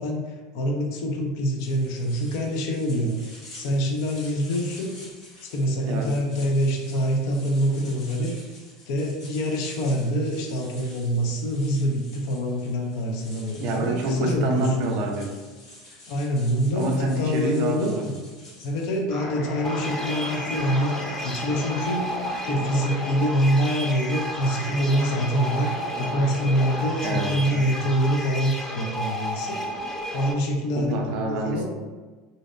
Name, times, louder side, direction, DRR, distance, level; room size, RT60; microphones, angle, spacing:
voice 1, 0.0-3.2 3.6-4.9 5.4-8.3 8.9-14.8 16.1-18.1 18.6-22.1 22.5-29.6 30.1-31.7, equal, 70° left, 1 dB, 0.5 m, -25 dB
sound 1, 1.6-19.0, left 1 dB, 85° left, 1.0 m, -48 dB
voice 2, 13.6-15.4 16.7-18.2 27.0-27.7 30.7-31.7, right 1 dB, 55° right, 2 dB, 0.4 m, -27 dB
sound 2, 19.1-27.4, left 1 dB, 45° left, 1.3 m, -37 dB
sound 3, 19.6-30.3, equal, 15° left, 0.3 m, -32 dB
2.5 x 2.1 x 2.4 m, 1.3 s
supercardioid pair, 110°, 2 cm